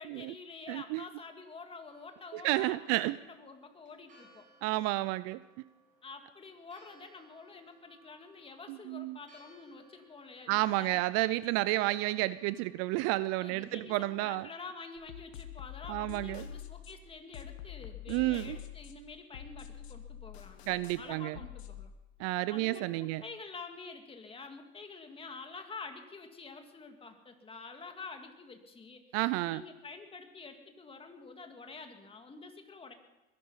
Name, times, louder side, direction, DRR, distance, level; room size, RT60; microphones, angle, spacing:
voice 1, 0.0-4.4 6.0-11.0 13.4-20.7 21.0-21.9 22.2-29.0 29.4-32.9, left 4 dB, 15° left, 5 dB, 2.2 m, -48 dB
voice 2, 0.7-1.0 2.3-3.2 4.6-5.4 8.7-9.2 10.5-14.5 15.9-16.5 18.1-18.6 20.7-21.4 22.2-23.2 29.1-29.6, right 18 dB, 50° right, 17 dB, 0.5 m, -31 dB
Church bell, 1.9-14.0, right 2 dB, 25° right, 7.2 m, -64 dB
sound 1, 15.0-21.9, left 10 dB, 85° left, 1.7 m, -46 dB
22.0 x 12.0 x 5.6 m, 1.0 s
supercardioid pair, 120°, 32 cm